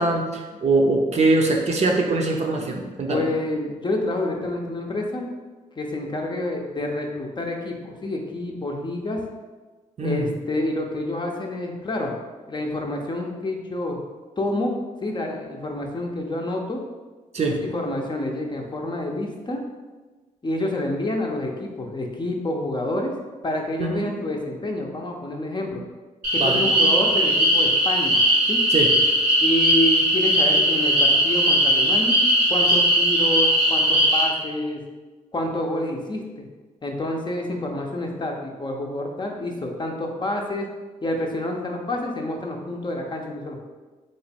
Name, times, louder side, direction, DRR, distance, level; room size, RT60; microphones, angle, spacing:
voice 1, 0.0-3.2 10.0-10.3 17.3-17.6 23.8-24.1 26.4-26.6 28.7-28.9, right 2 dB, 45° right, 0 dB, 0.6 m, -22 dB
voice 2, 3.1-5.2 5.8-9.2 10.0-12.1 12.5-14.0 14.4-14.7 15.0-16.8 17.5-19.6 20.4-23.1 23.4-25.8 26.3-28.2 28.5-28.6 29.4-32.2 32.5-34.8 35.3-36.5 36.8-40.7 41.0-43.6, left 1 dB, 30° left, 1 dB, 0.6 m, -28 dB
sound 1, 26.2-34.2, right 1 dB, 85° right, 1.4 m, -19 dB
3.2 x 2.2 x 4.2 m, 1.3 s
supercardioid pair, 55°, 15 cm